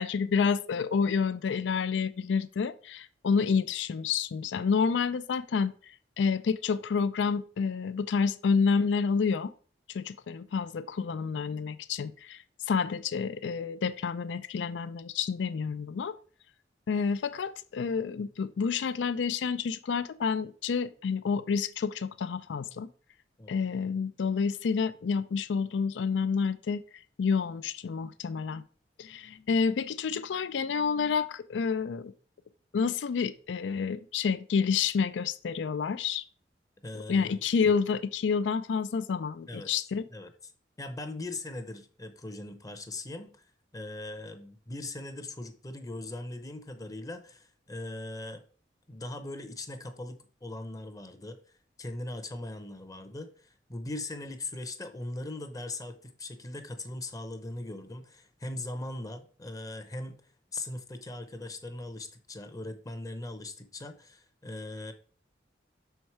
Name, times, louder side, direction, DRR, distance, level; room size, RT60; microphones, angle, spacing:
voice 1, 0.0-5.7 6.2-9.5 9.9-16.2 16.9-22.9 23.5-26.8 27.2-28.6 29.0-32.1 32.7-36.2 37.1-40.0, left 5 dB, 90° left, 0.4 m, -29 dB
voice 2, 36.8-37.4 39.5-39.7 40.1-40.5 40.8-43.4 43.7-48.4 48.9-51.4 51.8-60.2 60.5-64.9, left 2 dB, 20° left, 0.7 m, -40 dB
6.3 x 4.6 x 4.6 m
head